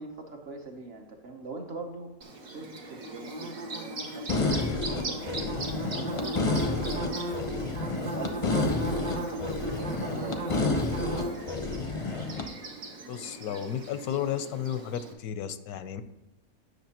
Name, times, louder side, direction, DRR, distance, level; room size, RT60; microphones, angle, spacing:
voice 1, 0.0-2.1 2.5-7.3 8.0-11.5, right 3 dB, 50° right, 2 dB, 1.0 m, -42 dB
Bird / Buzz, 2.2-15.1, right 2 dB, 70° right, 1.6 m, -36 dB
sound 1, 4.3-12.5, left 3 dB, 35° left, 0.5 m, -30 dB
voice 2, 13.1-16.0, left 9 dB, 85° left, 11 dB, 1.1 m, -33 dB
9.8 x 6.3 x 2.9 m, 0.91 s
omnidirectional pair, 1.5 m